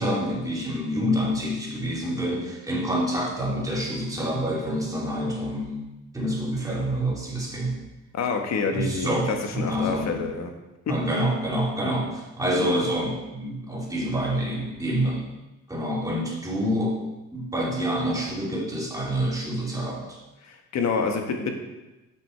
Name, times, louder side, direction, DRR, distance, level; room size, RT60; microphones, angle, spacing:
voice 1, 0.0-5.8 6.1-7.8 8.7-10.1 10.9-15.2 15.7-17.0 17.3-20.2, equal, 10° right, -4 dB, 2.8 m, -27 dB
voice 2, 8.1-10.5 10.9-11.0 12.6-12.7 20.4-21.5, left 5 dB, 60° left, 4 dB, 1.4 m, -27 dB
8.2 x 6.5 x 4.6 m, 1.0 s
cardioid pair, 90°, 30 cm